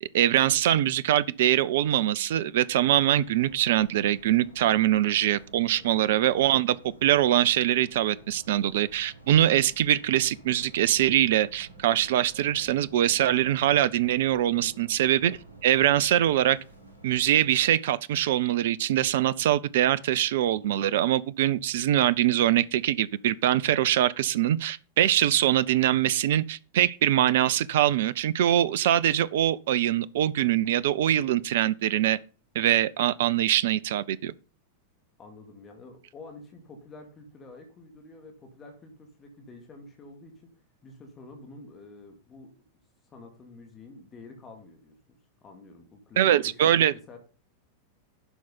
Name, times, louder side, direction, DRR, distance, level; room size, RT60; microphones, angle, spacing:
voice 1, 0.0-16.6 17.0-32.2 32.6-34.3 46.2-46.9, right 12 dB, 55° right, 0.4 m, -23 dB
sound 1, 2.7-17.7, right 2 dB, 80° right, 2.3 m, -51 dB
voice 2, 35.2-40.5 40.8-42.5 43.0-45.0 45.4-46.7 47.1-47.2, left 3 dB, 25° left, 2.3 m, -48 dB
11.5 x 4.6 x 5.5 m
figure-of-eight pair, 90°, 0 cm